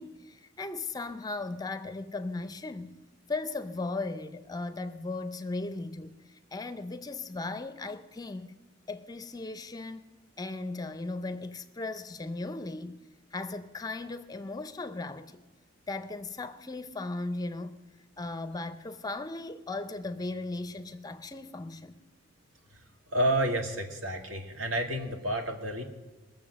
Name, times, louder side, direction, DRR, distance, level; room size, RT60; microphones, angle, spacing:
voice 1, 0.0-3.0 3.3-8.6 8.9-10.0 10.4-13.0 13.3-15.4 15.9-17.8 18.2-22.0, left 3 dB, 20° left, 0.5 m, -37 dB
voice 2, 23.1-25.8, right 1 dB, 80° right, 1.8 m, -30 dB
21.5 x 7.2 x 6.3 m
head